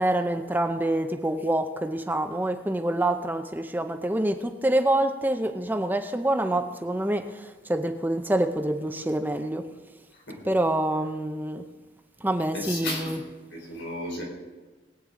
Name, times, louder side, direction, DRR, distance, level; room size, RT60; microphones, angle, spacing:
voice 1, 0.0-9.6 10.4-11.6 12.2-13.2, right 1 dB, 10° right, 6 dB, 0.6 m, -26 dB
voice 2, 12.5-13.2 13.5-14.2, left 2 dB, 85° left, -2 dB, 4.7 m, -34 dB
20.5 x 8.7 x 3.8 m, 1.3 s
head